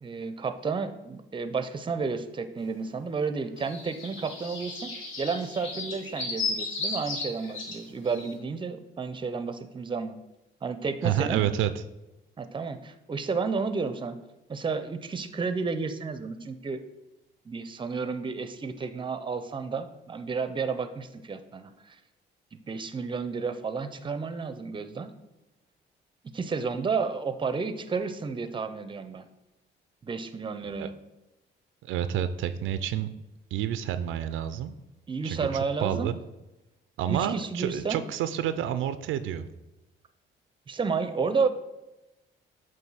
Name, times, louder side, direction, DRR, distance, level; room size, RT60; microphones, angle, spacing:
voice 1, 0.0-10.2 10.6-11.4 12.4-14.2 14.5-16.8 17.5-22.0 22.5-25.1 26.3-29.3 30.0-30.9 35.1-36.1 37.1-38.0 40.7-41.5, right 5 dB, 25° right, 10 dB, 0.6 m, -31 dB
sound 1, 2.7-2.8 3.1-8.3, left 3 dB, 80° left, 1.7 m, -35 dB
voice 2, 11.0-11.7 30.8-30.9 31.8-33.1 33.5-34.7 35.2-35.5 35.8-36.2 37.0-39.5, right 10 dB, 85° right, 12 dB, 0.4 m, -29 dB
7.8 x 2.7 x 5.6 m, 0.98 s
cardioid pair, 90°, 20 cm